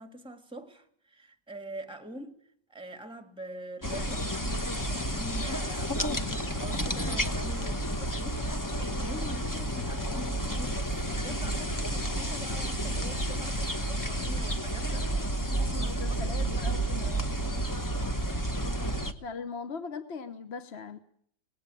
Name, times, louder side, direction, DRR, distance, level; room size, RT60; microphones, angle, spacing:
voice 1, 0.0-2.4 2.7-4.3 4.8-15.1 15.7-15.9 16.2-17.3, right 1 dB, 5° right, 1.5 m, -44 dB
sound 1, 3.8-19.1, right 1 dB, 15° left, 0.6 m, -31 dB
voice 2, 15.7-17.1 19.2-21.0, left 5 dB, 45° left, 1.0 m, -39 dB
19.5 x 16.5 x 9.0 m
omnidirectional pair, 2.0 m